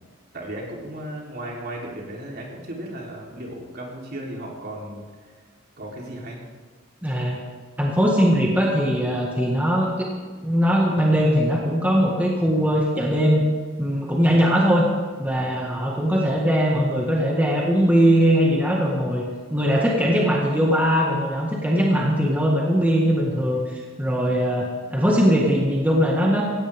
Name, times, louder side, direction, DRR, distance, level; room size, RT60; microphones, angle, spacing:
voice 1, 0.3-5.4 5.8-6.4, right 1 dB, 50° right, -2 dB, 3.7 m, -35 dB
voice 2, 7.0-7.4 7.8-10.1 10.4-13.4 13.8-14.8 15.2-19.2 19.5-26.4, equal, 10° right, -3 dB, 1.8 m, -20 dB
17.0 x 16.5 x 3.7 m, 1.5 s
head